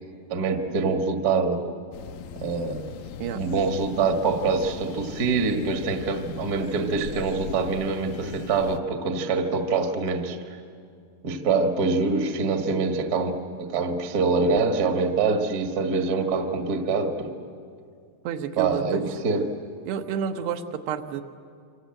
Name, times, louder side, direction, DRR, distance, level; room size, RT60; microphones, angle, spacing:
voice 1, 0.3-1.6 2.4-10.4 11.2-17.3 18.6-19.4, right 4 dB, 45° right, 5 dB, 1.1 m, -25 dB
sound 1, 1.9-8.8, left 7 dB, 75° left, 2.1 m, -40 dB
voice 2, 18.2-19.0 19.9-21.2, right 8 dB, 85° right, 6 dB, 3.2 m, -30 dB
26.5 x 26.0 x 7.8 m, 2.3 s
omnidirectional pair, 4.7 m